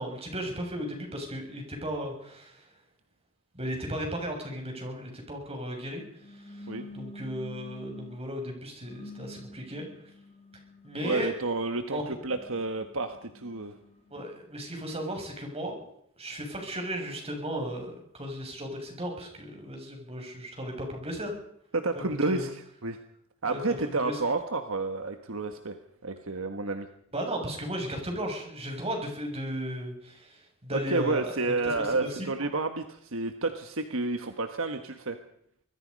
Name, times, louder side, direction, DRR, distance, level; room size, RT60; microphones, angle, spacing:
voice 1, 0.0-2.7 3.5-6.0 6.3-9.8 10.8-11.3 11.9-12.0 14.1-15.8 16.2-21.3 21.9-22.5 23.5-23.6 23.9-24.2 27.1-32.3, equal, 30° right, 3 dB, 6.9 m, -35 dB
sound 1, 6.2-8.2 8.8-11.5 12.1-14.4, left 1 dB, 30° left, 2.7 m, -47 dB
voice 2, 11.0-13.7 21.7-22.5 22.8-23.0 23.4-26.9 30.7-35.2, right 3 dB, 65° right, 7 dB, 1.4 m, -30 dB
25.5 x 20.5 x 5.4 m, 0.70 s
head